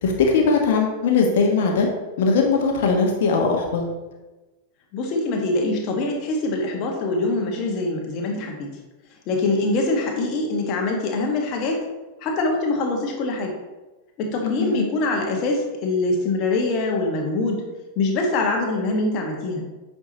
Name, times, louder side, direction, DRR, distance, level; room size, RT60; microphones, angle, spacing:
voice 1, 0.0-1.9 2.2-3.9 14.4-14.9, left 4 dB, 55° left, 2 dB, 1.3 m, -20 dB
voice 2, 4.9-8.7 9.3-11.8 12.2-13.5 14.2-17.6 18.0-19.6, left 2 dB, 40° left, 1 dB, 1.5 m, -24 dB
8.7 x 6.0 x 2.9 m, 1.1 s
figure-of-eight pair, 90°, 0 cm